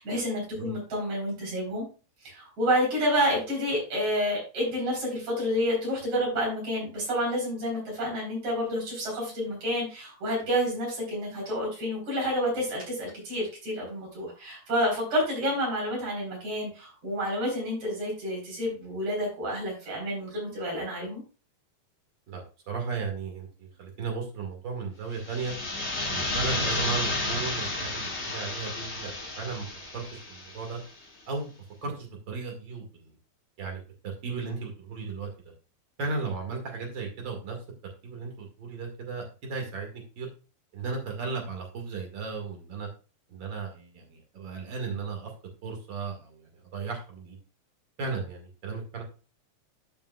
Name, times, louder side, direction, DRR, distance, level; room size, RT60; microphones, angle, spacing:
voice 1, 0.0-1.8 2.2-21.2, equal, 75° right, -2 dB, 5.5 m, -29 dB
voice 2, 22.3-25.5 26.1-29.7 29.9-30.8 31.3-31.5 31.8-33.1 33.6-35.3 36.0-37.6 38.0-40.3 40.7-42.9 43.3-45.3 45.6-47.4 48.0-49.0, right 4 dB, 40° right, 1 dB, 2.5 m, -35 dB
sound 1, 25.1-30.8, left 2 dB, 30° left, 1.6 m, -32 dB
13.0 x 5.3 x 2.3 m, 0.33 s
omnidirectional pair, 3.3 m